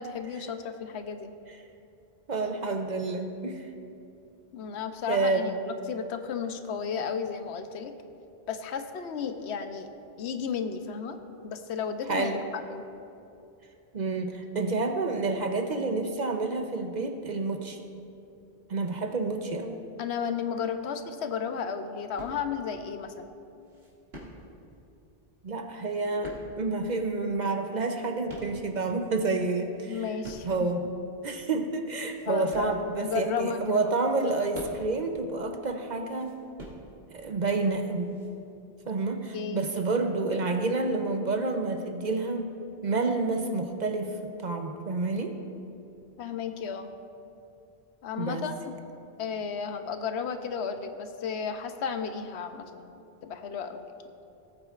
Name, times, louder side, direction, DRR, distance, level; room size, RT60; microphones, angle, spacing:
voice 1, 0.0-1.3 4.5-5.6 5.9-7.9 8.5-9.9 10.2-11.2 11.4-12.4 12.7-12.8 20.0-23.3 29.9-30.5 32.2-33.9 39.3-39.7 46.2-46.9 48.0-48.7 49.2-52.9 53.2-53.9, left 6 dB, 90° left, 8 dB, 1.0 m, -33 dB
voice 2, 2.3-3.7 5.1-5.5 12.1-12.4 13.9-17.8 18.7-19.8 25.4-30.0 30.4-30.8 31.2-36.4 37.1-38.2 38.9-42.5 42.8-45.4 48.2-48.4, right 3 dB, 50° right, 5 dB, 0.7 m, -29 dB
sound 1, 22.2-22.8 23.6-24.7 25.7-26.9 27.6-29.0 29.5-30.6 31.2-31.3 31.9-33.2 34.0-35.1 36.0-37.2 38.0-38.3, equal, 70° right, 2.2 m, -46 dB
18.0 x 8.7 x 2.4 m, 2.7 s
omnidirectional pair, 1.1 m